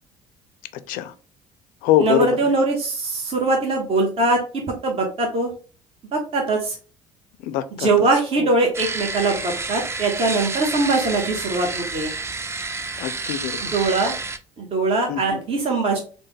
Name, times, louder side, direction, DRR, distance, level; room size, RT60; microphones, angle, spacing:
voice 1, 0.7-1.1 1.8-2.4 7.4-7.9 8.4-8.5 13.0-13.7 15.1-15.4, left 12 dB, 70° left, 0.4 m, -24 dB
voice 2, 2.0-4.4 4.8-5.5 6.1-6.8 7.8-12.1 13.7-14.2 14.6-16.0, right 3 dB, 40° right, 0.9 m, -21 dB
sound 1, 8.7-14.4, right 3 dB, 20° right, 0.4 m, -29 dB
3.2 x 2.1 x 3.2 m
hypercardioid pair, 65°, 15 cm